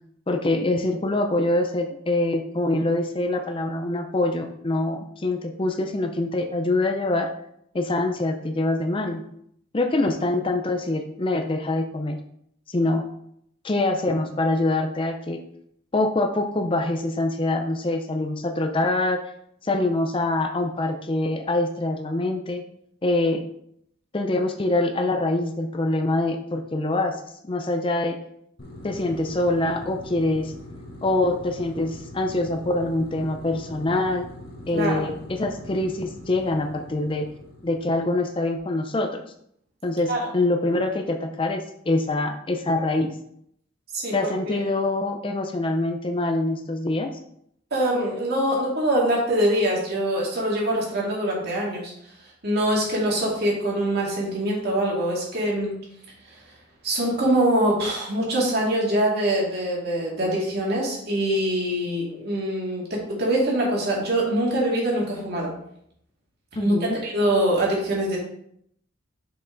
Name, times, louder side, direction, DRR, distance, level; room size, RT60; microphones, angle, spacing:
voice 1, 0.3-7.3 7.7-9.3 9.7-12.2 12.7-13.1 13.6-15.4 15.9-19.2 19.6-22.6 23.0-23.4 24.1-28.2 28.8-30.5 31.0-34.3 34.7-37.3 37.6-39.2 39.8-43.1 44.1-47.1 66.6-67.0, left 2 dB, 25° left, 6 dB, 0.5 m, -24 dB
sound 1, 28.6-38.4, left 1 dB, 50° left, 1.2 m, -42 dB
voice 2, 34.7-35.0 40.1-40.3 43.9-44.6 47.7-51.9 52.4-55.7 56.8-65.5 66.6-68.2, right 1 dB, 55° right, -3 dB, 2.4 m, -24 dB
5.9 x 5.4 x 3.9 m, 0.71 s
head